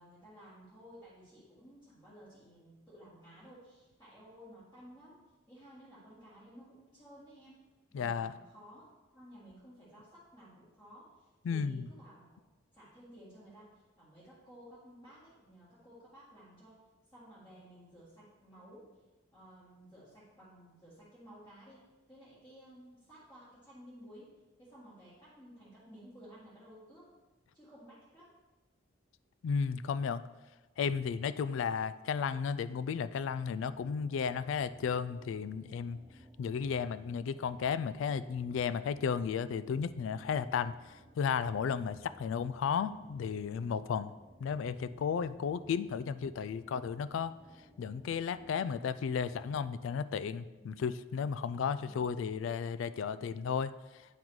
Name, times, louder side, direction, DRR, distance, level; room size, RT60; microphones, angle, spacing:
voice 1, 0.0-5.2 5.5-8.8 9.1-12.3 12.7-16.8 17.1-18.9 19.3-27.1 27.5-28.3 50.6-50.7 51.7-51.9, equal, 20° left, -11 dB, 1.8 m, -55 dB
voice 2, 7.9-8.3 11.4-11.9 29.4-30.2 30.8-36.0 36.4-40.7 41.2-44.1 44.4-47.4 47.8-53.7, left 6 dB, 75° left, 14 dB, 0.3 m, -34 dB
sound 1, 33.1-49.9, equal, 10° right, 0.8 m, -60 dB
8.8 x 3.9 x 4.6 m, 1.1 s
head